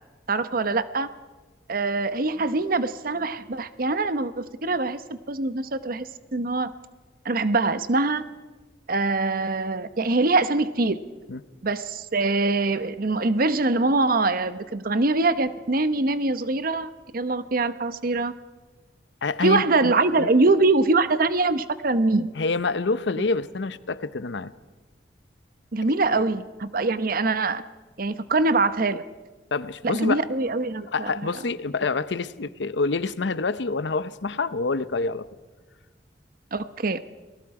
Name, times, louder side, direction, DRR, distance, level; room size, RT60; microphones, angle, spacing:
voice 1, 0.3-1.1 1.7-6.7 7.2-8.2 8.9-11.0 11.6-18.3 19.4-22.3 25.7-27.6 28.0-29.0 29.8-31.3 36.5-37.0, right 3 dB, 55° right, 13 dB, 0.9 m, -23 dB
voice 2, 19.2-20.3 22.4-24.5 29.5-30.2 30.9-35.3, left 3 dB, 80° left, 15 dB, 0.7 m, -27 dB
29.5 x 19.5 x 4.8 m, 1.3 s
head